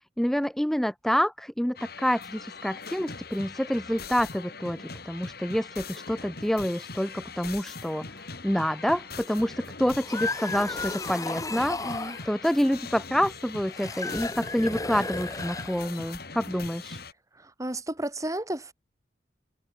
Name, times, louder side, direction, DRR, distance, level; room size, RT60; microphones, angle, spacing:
voice 1, 0.2-11.8 12.2-17.0, equal, ahead, 0.3 m, -28 dB
sound 1, 1.8-17.1, left 4 dB, 55° left, 3.5 m, -41 dB
sound 2, 9.8-12.3 13.7-16.1, left 3 dB, 20° left, 2.1 m, -34 dB
voice 2, 11.8-12.2 17.4-18.7, right 1 dB, 20° right, 3.0 m, -33 dB
head